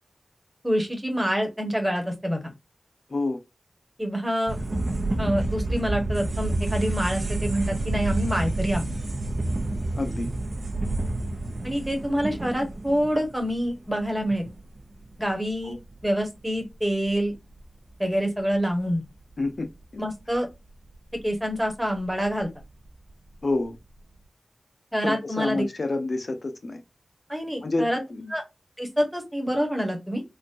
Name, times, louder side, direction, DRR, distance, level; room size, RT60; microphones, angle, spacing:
voice 1, 0.6-2.5 4.0-4.6 5.2-8.9 11.6-14.5 15.2-17.3 18.0-19.0 20.0-20.5 21.2-22.5 24.9-25.6 27.3-28.0 28.3-28.4 28.8-30.2, equal, 5° right, 1.4 m, -26 dB
voice 2, 3.1-3.4 9.9-10.3 15.6-15.8 19.4-20.0 23.4-23.8 25.0-26.8 27.6-28.3, left 2 dB, 55° left, 0.8 m, -28 dB
sound 1, 4.5-14.9 15.3-15.4 15.6-16.4 17.1-17.7 17.9-18.0 18.5-18.6 19.3-19.4 20.1-20.4 20.9-21.0 21.2-21.3 21.7-22.1 22.4-22.5 22.9-23.0 23.3-23.4, right 2 dB, 50° right, 0.8 m, -29 dB
4.1 x 2.4 x 2.6 m
wide cardioid pair, 90°, 0 cm